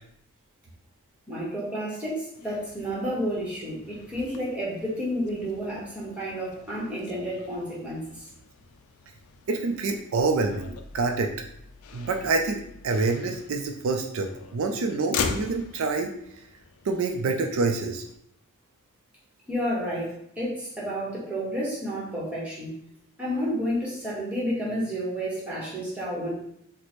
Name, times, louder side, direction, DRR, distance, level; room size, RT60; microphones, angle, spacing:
voice 1, 1.3-8.3 19.5-22.7 23.2-26.3, equal, 5° right, -6 dB, 1.0 m, -31 dB
Motor vehicle (road), 2.3-18.2, left 5 dB, 80° left, 0.4 m, -41 dB
voice 2, 9.5-10.7 10.9-11.3 11.9-16.1 16.9-18.0, right 3 dB, 70° right, 3 dB, 0.4 m, -26 dB
3.1 x 2.1 x 4.1 m, 0.72 s
head